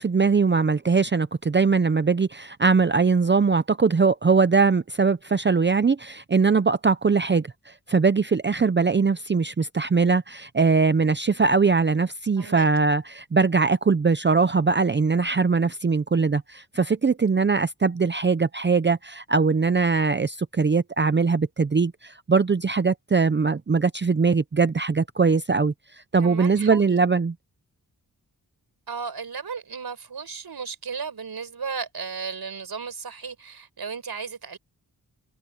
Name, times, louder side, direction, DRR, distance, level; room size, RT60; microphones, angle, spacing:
voice 1, 0.0-25.7 26.1-27.3, right 4 dB, 30° right, 0.6 m, -21 dB
voice 2, 12.4-12.7 26.2-27.0 28.9-34.6, right 5 dB, 70° right, 5.2 m, -35 dB
wide cardioid pair, 105°, 38 cm